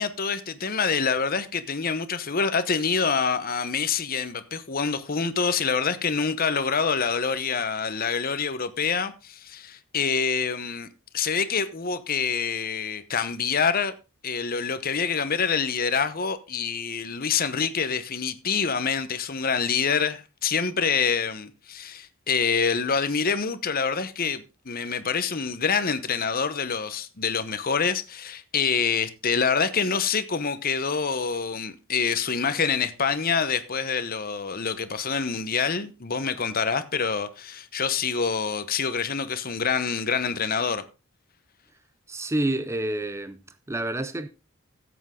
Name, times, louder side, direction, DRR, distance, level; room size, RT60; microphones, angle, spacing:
voice 1, 0.0-10.9 11.1-13.9 14.2-40.8, left 5 dB, 45° left, 1.0 m, -26 dB
voice 2, 42.1-44.3, right 1 dB, 15° right, 0.6 m, -29 dB
14.5 x 8.1 x 3.8 m
head